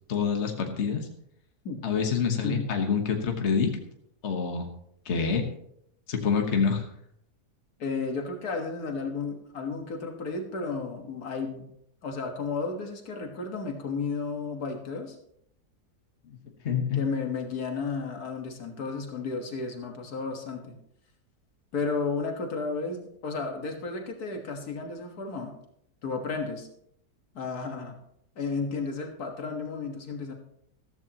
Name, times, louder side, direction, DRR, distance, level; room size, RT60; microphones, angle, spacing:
voice 1, 0.1-1.1 1.8-3.7 4.2-4.7 5.0-5.4 6.1-6.8 16.6-17.0, left 6 dB, 50° left, 4 dB, 1.5 m, -26 dB
voice 2, 2.4-2.7 7.8-11.7 12.0-15.2 16.9-20.8 21.7-25.6 26.0-26.7 27.4-28.0 28.4-30.3, left 4 dB, 75° left, 3 dB, 2.0 m, -33 dB
14.0 x 13.5 x 2.9 m, 0.73 s
omnidirectional pair, 1.6 m